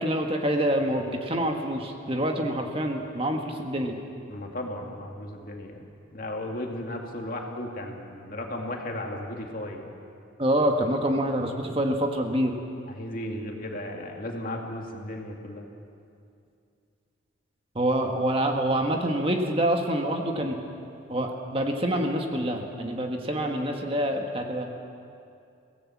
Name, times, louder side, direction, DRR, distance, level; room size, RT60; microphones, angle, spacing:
voice 1, 0.0-4.0 10.4-12.5 17.7-20.6 21.1-24.7, right 1 dB, 30° right, 3 dB, 1.5 m, -26 dB
voice 2, 4.3-5.8 6.1-9.9 12.9-15.7, left 1 dB, 45° left, 1 dB, 2.4 m, -35 dB
23.5 x 17.5 x 7.3 m, 2.5 s
head